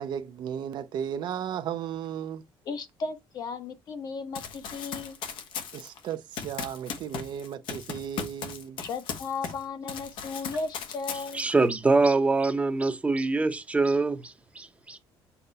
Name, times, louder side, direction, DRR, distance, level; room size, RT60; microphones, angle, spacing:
voice 1, 0.0-2.4 5.7-8.8, right 9 dB, 60° right, 0.8 m, -35 dB
voice 2, 2.6-5.2 8.8-11.5, left 4 dB, 50° left, 1.3 m, -35 dB
Run, 4.4-9.6 9.9-11.6, left 7 dB, 70° left, 1.4 m, -37 dB
voice 3, 11.3-15.0, right 3 dB, 15° right, 0.9 m, -24 dB
7.1 x 3.3 x 4.1 m
cardioid pair, 140°, 9 cm